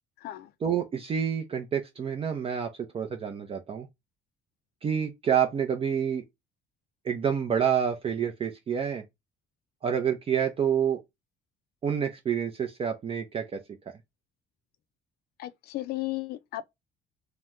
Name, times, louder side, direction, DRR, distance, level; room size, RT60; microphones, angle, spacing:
voice 1, 0.6-3.9 4.8-6.2 7.0-9.0 9.8-11.0 11.8-13.6, right 8 dB, 35° right, 0.5 m, -28 dB
voice 2, 15.4-16.6, left 17 dB, 70° left, 0.4 m, -34 dB
2.9 x 2.1 x 3.4 m
cardioid pair, 110°, 17 cm